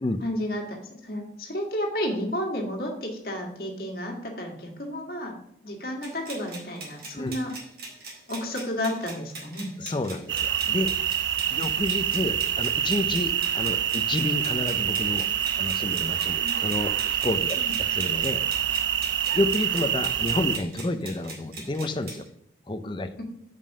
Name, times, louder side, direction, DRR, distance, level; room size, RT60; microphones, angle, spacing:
voice 1, 0.2-5.3 5.6-7.6 8.3-9.7 16.4-16.5 17.6-17.7, equal, 55° left, 1 dB, 1.8 m, -32 dB
sound 1, 6.0-22.3, right 3 dB, 55° right, 2.2 m, -42 dB
voice 2, 9.8-10.9 11.5-15.3 15.6-18.4 19.3-22.2 22.7-23.1, left 2 dB, 25° left, 10 dB, 0.5 m, -30 dB
calenzana crickets, 10.3-20.6, right 10 dB, 80° right, 0.4 m, -26 dB
5.4 x 5.3 x 6.4 m, 0.77 s
head